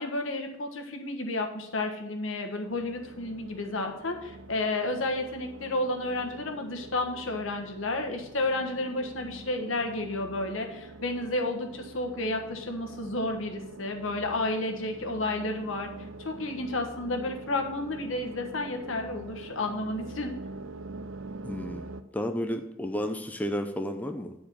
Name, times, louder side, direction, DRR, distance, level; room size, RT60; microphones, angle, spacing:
voice 1, 0.0-15.9 16.2-20.3, left 2 dB, 75° left, 4 dB, 1.3 m, -31 dB
sound 1, 2.7-22.0, right 3 dB, 85° right, 0.6 m, -44 dB
voice 2, 21.4-24.3, equal, 10° left, 5 dB, 0.5 m, -32 dB
9.8 x 4.7 x 6.7 m, 0.85 s
head